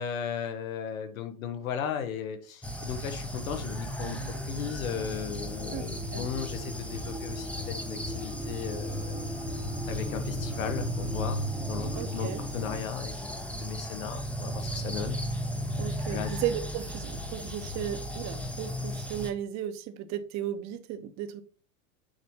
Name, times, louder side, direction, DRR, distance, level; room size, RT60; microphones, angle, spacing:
voice 1, 0.0-4.2 4.5-9.3 9.9-15.2 16.1-16.3, left 8 dB, 75° left, 8 dB, 1.5 m, -36 dB
sound 1, 2.6-19.3, equal, 5° left, 0.8 m, -35 dB
sound 2, 4.1-12.8, right 1 dB, 10° right, 1.3 m, -42 dB
voice 2, 12.0-12.4 15.8-21.4, right 10 dB, 40° right, 9 dB, 1.1 m, -35 dB
8.2 x 3.2 x 5.5 m, 0.39 s
hypercardioid pair, 105°, 42 cm